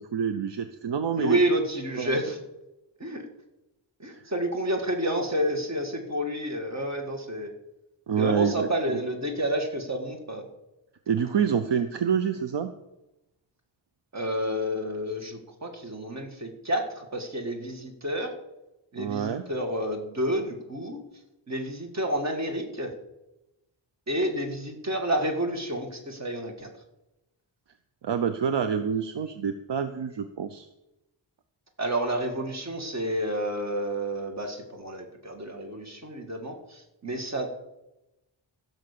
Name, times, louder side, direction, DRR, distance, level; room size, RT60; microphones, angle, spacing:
voice 1, 0.0-1.4 2.0-2.2 4.2-4.3 8.1-9.0 11.1-12.7 19.0-19.4 28.0-30.7, right 7 dB, 65° right, 9 dB, 0.8 m, -27 dB
voice 2, 1.2-2.4 3.0-3.2 4.0-7.5 8.2-10.5 14.1-18.3 18.9-21.0 21.5-22.9 24.1-26.7 31.8-37.5, equal, 35° right, 4 dB, 2.0 m, -30 dB
15.5 x 6.5 x 6.8 m, 0.94 s
wide cardioid pair, 130°, 46 cm